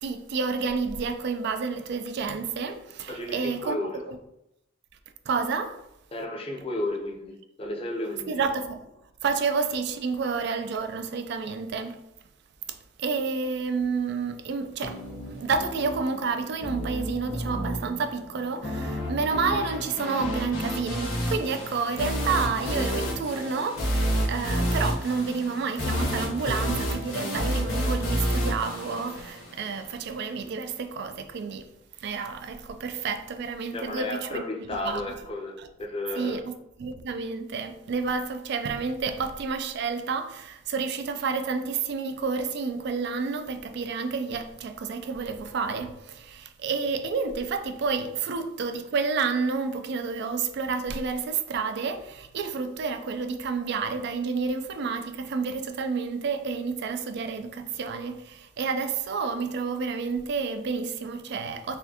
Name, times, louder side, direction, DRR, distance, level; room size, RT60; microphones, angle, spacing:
voice 1, 0.0-3.8 4.1-4.2 5.3-5.8 8.3-8.9 9.2-12.0 12.7-31.7 32.0-34.4 34.7-35.0 35.6-35.7 36.2-61.8, right 5 dB, 60° right, 0.3 m, -30 dB
voice 2, 3.1-4.0 6.1-8.4 33.7-36.4, left 1 dB, 30° left, 0.5 m, -33 dB
sound 1, 14.8-29.8, equal, 85° left, 1.1 m, -30 dB
4.1 x 2.6 x 2.7 m
head